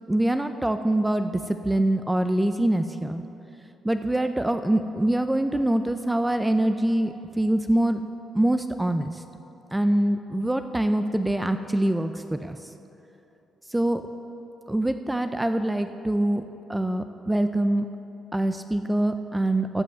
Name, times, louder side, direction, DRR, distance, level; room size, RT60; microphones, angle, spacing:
voice 1, 0.1-3.2 3.8-8.0 8.3-9.1 9.7-12.6 13.7-14.0 14.7-16.4 16.7-17.9 18.3-19.8, right 1 dB, 10° right, 8 dB, 0.4 m, -24 dB
14.0 x 5.4 x 7.5 m, 3.0 s
cardioid pair, 90°, 0 cm